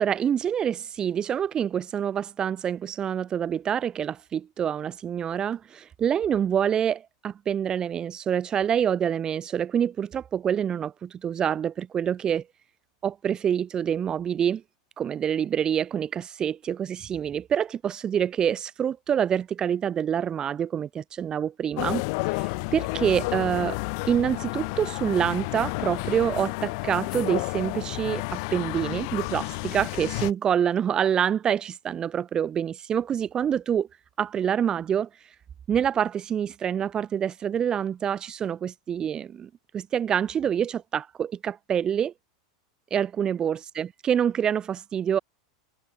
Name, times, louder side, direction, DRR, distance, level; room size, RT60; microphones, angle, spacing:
voice 1, 0.0-12.4 13.0-14.6 15.0-23.8 24.1-33.9 34.2-35.1 35.7-42.1 42.9-45.2, right 8 dB, 25° right, 3.6 m, -26 dB
sound 1, 21.8-30.3, left 32 dB, 60° left, 1.8 m, -31 dB
supercardioid pair, 130°, 3 cm